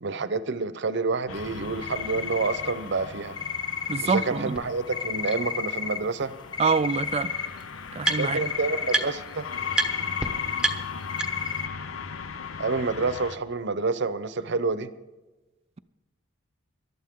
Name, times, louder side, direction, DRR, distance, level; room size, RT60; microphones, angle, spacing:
voice 1, 0.0-3.4 4.0-6.3 8.2-9.4 12.6-14.9, right 4 dB, 60° right, 0.7 m, -28 dB
sound 1, 1.3-13.4, left 6 dB, 80° left, 0.7 m, -39 dB
sound 2, 1.8-3.1 3.4-4.2 4.9-6.0 6.3-7.8 8.0-9.0 9.5-10.7 11.1-11.7, left 7 dB, 20° left, 0.7 m, -32 dB
voice 2, 3.9-4.6 6.6-7.3 7.9-8.4, right 5 dB, 30° right, 0.4 m, -25 dB
sound 3, 4.5-4.6 5.3-5.4 6.7-6.8 7.0-8.5 8.9-9.3 9.7-9.9 10.2-10.3 10.6-11.6, right 3 dB, 5° right, 1.0 m, -29 dB
19.0 x 12.0 x 3.7 m
head